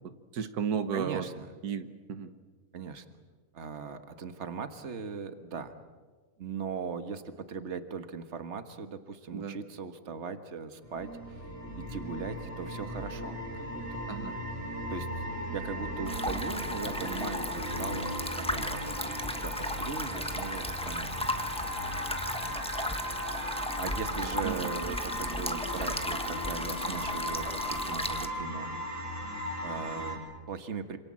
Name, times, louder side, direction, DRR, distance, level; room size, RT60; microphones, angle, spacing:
voice 1, 0.3-1.3 1.6-2.3 9.3-9.6 14.1-14.4 24.4-24.6, right 7 dB, 90° right, 10 dB, 1.7 m, -33 dB
voice 2, 0.9-1.5 2.7-3.1 3.5-5.8 6.4-11.5 11.8-14.0 14.9-15.2 15.5-21.3 23.8-28.9 29.6-31.0, right 5 dB, 50° right, 9 dB, 1.7 m, -39 dB
sound 1, 10.8-30.2, equal, 25° left, 5.8 m, -37 dB
sound 2, 16.0-28.3, left 1 dB, 5° left, 1.2 m, -35 dB
27.5 x 27.0 x 7.6 m, 1.4 s
omnidirectional pair, 1.6 m